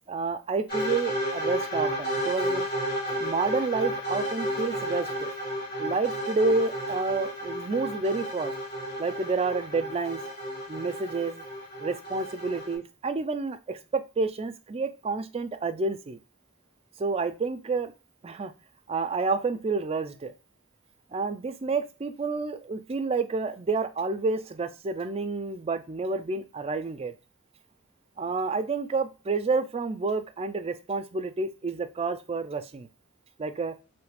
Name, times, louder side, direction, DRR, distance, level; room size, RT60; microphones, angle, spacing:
voice 1, 0.1-2.7 3.2-5.3 5.8-8.5 9.0-10.3 10.7-11.4 11.8-16.2 17.0-17.9 18.2-18.5 18.9-20.3 21.1-27.1 28.2-32.9 33.4-33.8, right 3 dB, 25° right, 8 dB, 0.3 m, -29 dB
sound 1, 0.7-12.8, equal, 45° left, 1.3 m, -32 dB
3.1 x 2.4 x 3.3 m, 0.32 s
head